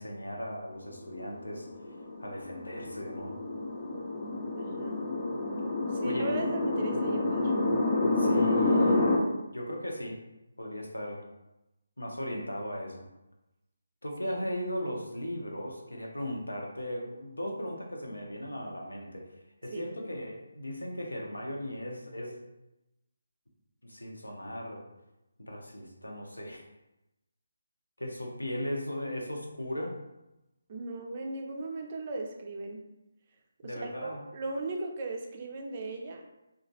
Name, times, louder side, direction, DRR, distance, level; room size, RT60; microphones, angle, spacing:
voice 1, 0.0-1.7 2.2-3.4 6.0-6.3 8.2-9.1 9.5-10.2 10.6-11.3 12.0-13.1 14.0-19.3 19.6-22.4 23.8-24.8 25.4-26.7 28.0-29.9 33.6-34.2, equal, 85° left, 0 dB, 0.7 m, -37 dB
sound 1, 1.1-9.2, left 2 dB, 25° left, 0.5 m, -28 dB
voice 2, 4.5-5.1 5.9-7.5 14.2-14.4 19.7-19.9 30.7-32.8 33.6-36.3, right 2 dB, 35° right, 2 dB, 0.4 m, -37 dB
2.9 x 2.3 x 2.7 m, 0.95 s
figure-of-eight pair, 150°, 0 cm